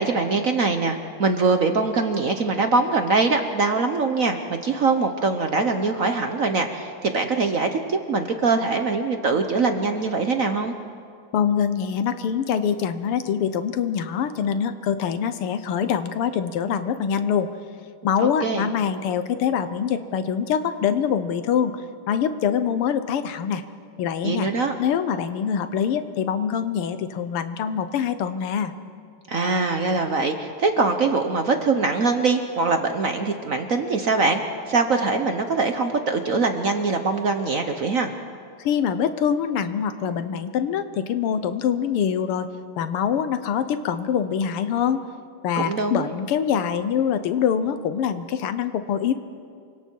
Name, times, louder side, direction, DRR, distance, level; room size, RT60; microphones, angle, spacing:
voice 1, 0.0-10.7 18.2-18.7 24.2-24.7 29.3-34.4 34.7-38.1 45.6-46.1, right 3 dB, 50° right, 6 dB, 1.1 m, -23 dB
voice 2, 11.3-17.5 18.0-21.7 22.1-23.6 24.0-24.5 24.8-28.7 38.7-42.5 42.8-45.0 45.4-49.1, left 8 dB, 80° left, 11 dB, 1.9 m, -24 dB
27.5 x 24.5 x 4.6 m, 2.3 s
omnidirectional pair, 2.4 m